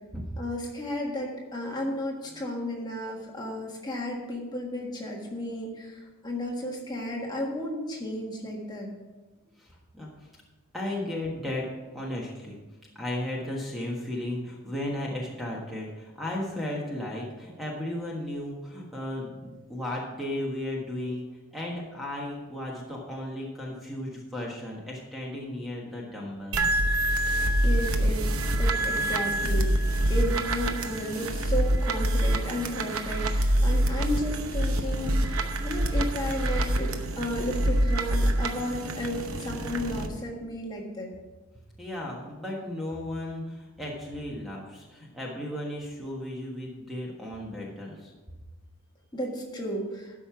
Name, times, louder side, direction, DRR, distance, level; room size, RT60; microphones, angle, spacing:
voice 1, 0.4-8.9 27.2-29.7 30.1-41.1 49.1-50.1, equal, 20° left, -1 dB, 1.5 m, -33 dB
voice 2, 10.7-11.7 11.9-12.6 12.9-21.2 21.5-26.6 30.0-30.1 41.8-48.1, left 1 dB, ahead, -3 dB, 1.4 m, -35 dB
sound 1, 26.5-40.1, right 1 dB, 70° right, 0.9 m, -26 dB
12.0 x 5.4 x 5.9 m, 1.2 s
head